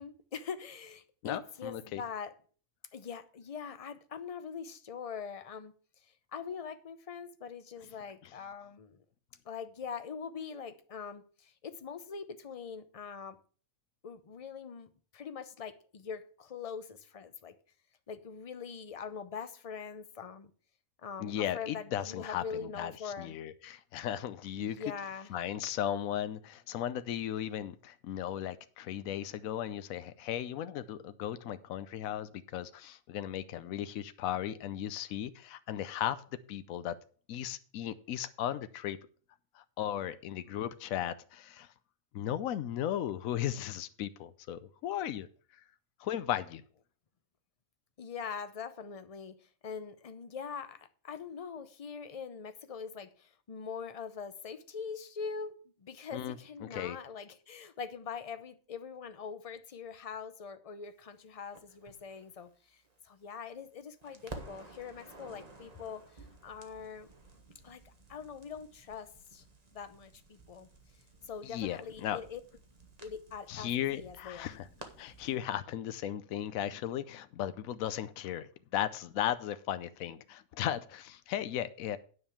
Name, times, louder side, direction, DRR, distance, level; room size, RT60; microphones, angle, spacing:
voice 1, 0.0-2.3 2.9-5.7 6.3-9.0 9.4-13.4 14.0-17.5 18.1-20.5 21.0-23.3 24.6-25.3 48.0-66.0 66.4-67.1 67.6-69.4 69.7-70.7 71.3-72.4 73.0-74.5, left 6 dB, 35° left, 0.7 m, -43 dB
voice 2, 1.2-2.0 8.2-8.3 21.2-24.8 25.3-37.0 37.3-39.0 39.5-41.7 42.1-45.3 46.0-46.6 56.1-57.0 71.4-72.2 73.5-74.7 75.0-82.0, left 11 dB, 80° left, 1.1 m, -36 dB
Crackle, 61.5-63.7 64.0-75.3, right 3 dB, 30° right, 1.4 m, -53 dB
9.7 x 5.3 x 7.1 m
omnidirectional pair, 1.4 m